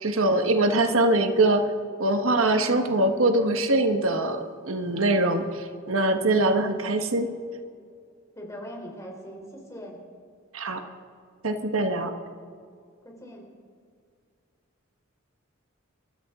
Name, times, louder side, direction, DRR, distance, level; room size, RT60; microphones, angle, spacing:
voice 1, 0.0-1.7 2.0-7.3 10.5-10.8 11.4-12.1, right 2 dB, 85° right, 7 dB, 1.3 m, -23 dB
voice 2, 8.4-10.0 13.0-13.4, equal, 15° left, -1 dB, 3.6 m, -40 dB
29.0 x 13.5 x 3.7 m, 2.3 s
head